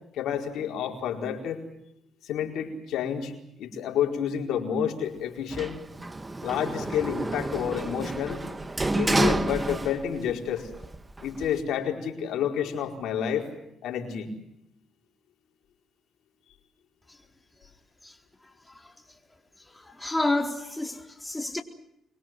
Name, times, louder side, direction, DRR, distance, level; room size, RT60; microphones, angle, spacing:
voice 1, 0.1-1.6 2.2-3.3 3.6-5.8 6.4-8.4 8.9-10.7 11.2-13.5 13.8-14.3, left 8 dB, 80° left, 4.7 m, -29 dB
Sliding door, 5.5-10.3 10.7-11.6, right 2 dB, 20° right, 1.8 m, -29 dB
voice 2, 20.0-21.6, left 2 dB, 10° left, 4.1 m, -28 dB
25.5 x 23.5 x 7.6 m
cardioid pair, 90°, 0 cm